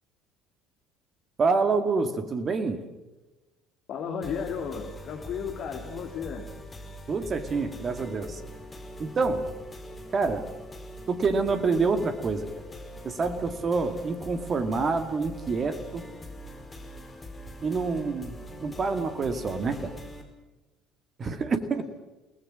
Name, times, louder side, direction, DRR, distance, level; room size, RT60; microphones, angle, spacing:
voice 1, 1.4-2.8 7.1-8.4 9.0-9.5 10.1-10.5 11.1-12.5 13.0-16.0 17.6-19.9 21.2-21.8, right 4 dB, 35° right, 9 dB, 2.2 m, -27 dB
voice 2, 3.9-6.5, left 6 dB, 50° left, 4 dB, 2.9 m, -34 dB
sound 1, 4.2-20.2, equal, 20° left, 4.7 m, -43 dB
29.0 x 19.5 x 6.4 m, 1.1 s
figure-of-eight pair, 55°, 0 cm